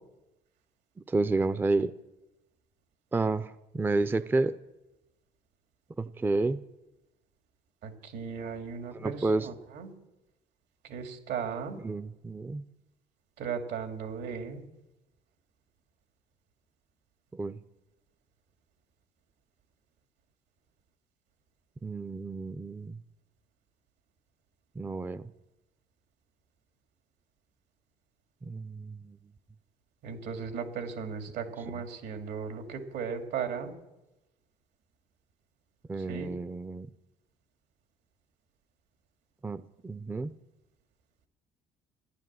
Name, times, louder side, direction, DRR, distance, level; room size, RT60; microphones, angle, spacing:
voice 1, 1.1-1.9 3.1-4.6 6.0-6.6 8.9-9.5 11.8-12.6 17.3-17.6 21.8-23.0 24.8-25.2 28.5-29.2 35.9-36.9 39.4-40.3, right 3 dB, 10° right, 14 dB, 0.5 m, -30 dB
voice 2, 7.8-9.9 10.8-11.8 13.4-14.6 30.0-33.7 36.0-36.3, right 6 dB, 80° right, 5 dB, 2.5 m, -36 dB
14.5 x 10.5 x 7.5 m, 0.98 s
cardioid pair, 110°, 17 cm